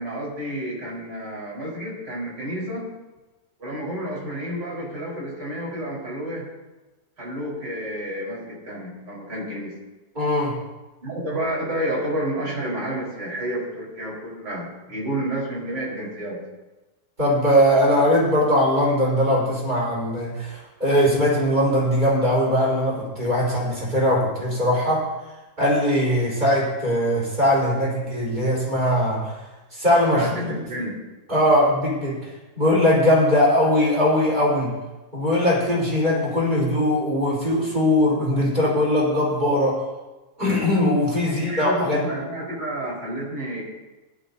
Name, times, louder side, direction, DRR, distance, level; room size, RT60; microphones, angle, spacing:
voice 1, 0.0-2.9 3.6-6.5 7.2-9.7 11.0-16.4 30.1-31.0 41.2-43.6, right 1 dB, 70° right, -4 dB, 5.3 m, -30 dB
voice 2, 10.1-10.6 17.2-25.0 25.6-29.3 29.7-30.5 31.3-32.3 32.6-34.7 35.1-39.8 40.4-42.0, left 1 dB, 25° right, -6 dB, 4.6 m, -20 dB
19.0 x 11.5 x 2.8 m, 1.1 s
omnidirectional pair, 1.9 m